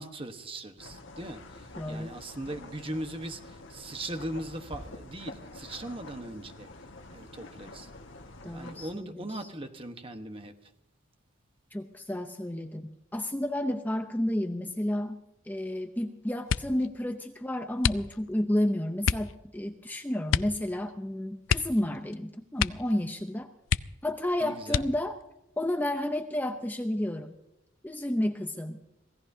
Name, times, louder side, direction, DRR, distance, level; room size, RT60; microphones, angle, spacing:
voice 1, 0.0-6.7 7.1-7.9 8.4-10.5 24.4-24.8, right 1 dB, 30° right, 1.2 m, -39 dB
sound 1, 0.8-8.9, left 2 dB, 75° left, 1.5 m, -47 dB
voice 2, 1.8-2.2 8.4-9.5 11.7-23.5 24.0-25.2 25.6-27.4 27.8-28.9, left 1 dB, 10° left, 0.7 m, -31 dB
sound 2, 16.4-16.9 17.8-18.4 19.0-19.3 20.3-20.6 20.9-21.0 21.4-22.2 22.5-23.0 23.3-23.4 23.7-24.2 24.7-25.2 25.9-26.5 26.9-27.3, left 7 dB, 90° left, 0.4 m, -29 dB
26.5 x 17.0 x 2.7 m
head